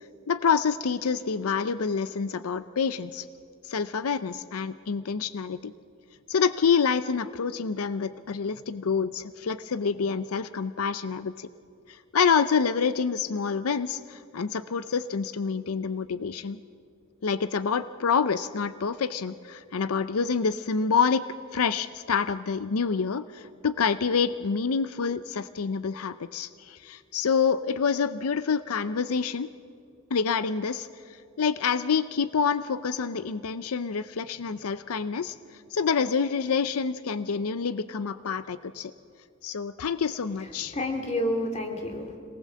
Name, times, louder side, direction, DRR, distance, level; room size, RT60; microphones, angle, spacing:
voice 1, 0.3-3.3 3.6-5.7 6.3-11.5 11.9-16.6 17.2-21.3 21.5-29.5 30.1-30.9 31.4-35.4 35.7-38.9 39.4-40.8, left 6 dB, 90° left, 14 dB, 0.6 m, -27 dB
voice 2, 40.4-42.2, left 1 dB, 30° left, 4 dB, 2.5 m, -30 dB
26.0 x 19.0 x 7.6 m, 2.4 s
head